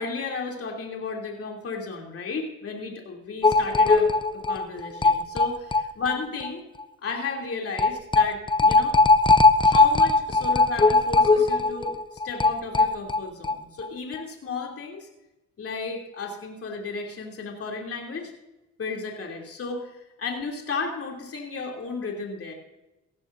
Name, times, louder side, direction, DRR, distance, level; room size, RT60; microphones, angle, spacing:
voice 1, 0.0-6.6 7.0-9.0 9.6-15.1 15.6-18.3 18.8-22.5, left 4 dB, 50° left, 1 dB, 3.2 m, -33 dB
sound 1, 3.4-6.2 6.4-6.5 6.8-6.9 7.8-13.5 13.8-13.9 14.2-14.3, left 3 dB, 15° left, 0.6 m, -19 dB
17.5 x 15.0 x 2.7 m, 0.97 s
cardioid pair, 90°, 30 cm